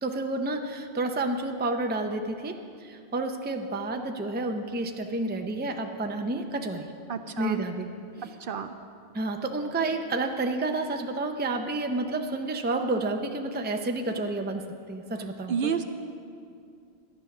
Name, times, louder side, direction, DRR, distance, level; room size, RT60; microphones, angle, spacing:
voice 1, 0.0-2.6 2.8-6.9 7.4-7.9 8.2-8.3 9.1-14.6 14.9-15.7, right 2 dB, 15° right, 5 dB, 0.4 m, -30 dB
voice 2, 7.1-7.6 8.4-8.7 15.5-15.8, right 7 dB, 65° right, 8 dB, 0.7 m, -30 dB
12.0 x 9.7 x 5.9 m, 2.4 s
omnidirectional pair, 1.1 m